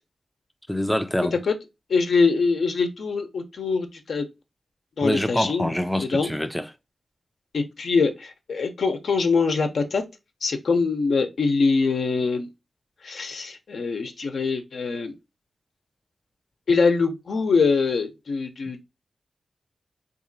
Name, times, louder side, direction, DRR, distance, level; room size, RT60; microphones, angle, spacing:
voice 1, 0.7-1.4 5.0-6.6, left 1 dB, ahead, 0.4 m, -25 dB
voice 2, 1.9-4.3 5.0-5.7 6.0-6.3 7.5-10.0 10.4-12.5 13.0-15.1 16.7-18.8, left 4 dB, 80° left, 0.8 m, -23 dB
3.8 x 2.7 x 2.6 m
wide cardioid pair, 95°, 0 cm